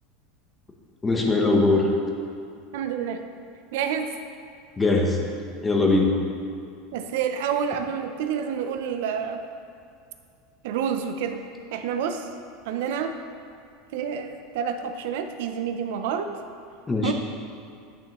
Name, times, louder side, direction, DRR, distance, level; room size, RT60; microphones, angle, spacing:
voice 1, 1.0-1.9 4.8-5.2 5.6-6.1 16.9-17.1, left 2 dB, 10° left, 1 dB, 0.7 m, -20 dB
voice 2, 2.7-3.2 3.7-4.1 6.9-9.4 10.6-11.4 11.7-12.3 12.6-13.1 13.9-16.3 17.0-17.1, right 7 dB, 65° right, 7 dB, 0.5 m, -28 dB
9.2 x 5.9 x 2.9 m, 2.5 s
supercardioid pair, 165°, 0 cm